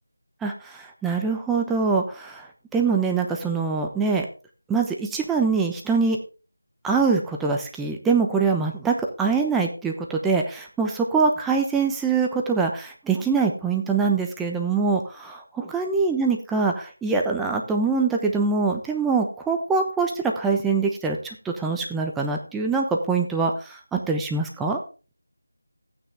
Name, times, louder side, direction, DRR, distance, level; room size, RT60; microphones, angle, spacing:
voice 1, 0.4-2.4 2.7-4.3 4.7-6.2 6.8-24.8, right 4 dB, 5° right, 1 dB, 0.9 m, -24 dB
13.5 x 9.2 x 3.4 m, 0.34 s
figure-of-eight pair, 170°, 0 cm